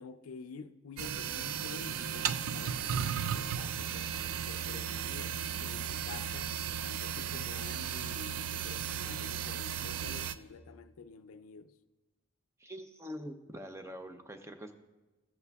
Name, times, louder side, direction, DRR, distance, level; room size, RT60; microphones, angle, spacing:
voice 1, 0.0-11.8, left 5 dB, 80° left, 0.4 m, -49 dB
sound 1, 1.0-10.3, right 8 dB, 75° right, 0.4 m, -35 dB
voice 2, 12.6-14.7, equal, 15° right, 0.5 m, -44 dB
15.0 x 8.1 x 2.3 m
head